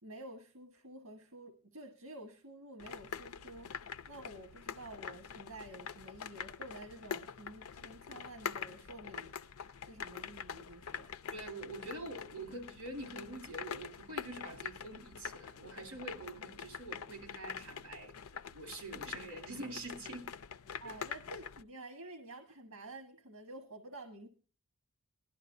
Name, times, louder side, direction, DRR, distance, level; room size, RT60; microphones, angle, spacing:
voice 1, 0.0-9.4 9.8-11.1 20.8-24.3, right 2 dB, 85° right, 1.3 m, -50 dB
sound 1, 2.8-21.6, left 7 dB, 85° left, 0.5 m, -45 dB
voice 2, 11.3-20.3 20.8-21.0, right 2 dB, 70° right, 2.6 m, -46 dB
19.5 x 12.0 x 2.6 m
head